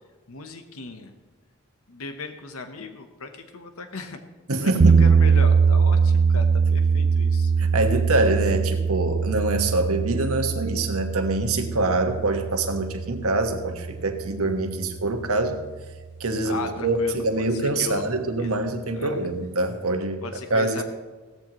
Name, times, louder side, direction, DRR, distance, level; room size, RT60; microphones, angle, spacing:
voice 1, 0.3-1.1 1.9-4.2 4.6-4.7 5.0-7.5 16.4-17.5 17.8-18.0 18.4-18.5 18.9-19.2 20.2-20.8, left 3 dB, 80° left, 7 dB, 1.0 m, -36 dB
voice 2, 4.5-5.0 7.6-15.6 16.2-20.2 20.5-20.8, right 2 dB, 85° right, 5 dB, 1.3 m, -25 dB
sound 1, 4.8-14.8, right 5 dB, 50° right, 0.4 m, -22 dB
16.5 x 13.5 x 3.0 m, 1.3 s
head